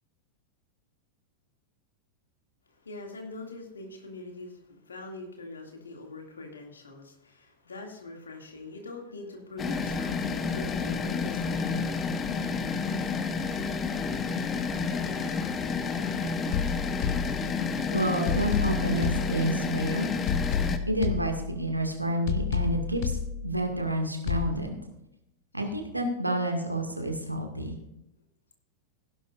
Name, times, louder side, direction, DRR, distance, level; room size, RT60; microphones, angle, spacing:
voice 1, 2.7-12.0, left 2 dB, 75° left, 2 dB, 2.4 m, -43 dB
sound 1, 9.6-20.8, left 5 dB, 25° left, 1.0 m, -30 dB
sound 2, 16.5-17.8 18.3-19.8 20.3-21.8 22.3-23.8 24.3-24.5, left 7 dB, 45° left, 0.7 m, -31 dB
voice 2, 17.9-20.1 20.9-23.2 23.4-24.8 25.5-27.8, right 1 dB, 85° right, 3 dB, 2.1 m, -29 dB
16.5 x 11.0 x 2.5 m, 0.83 s
figure-of-eight pair, 90°, 0 cm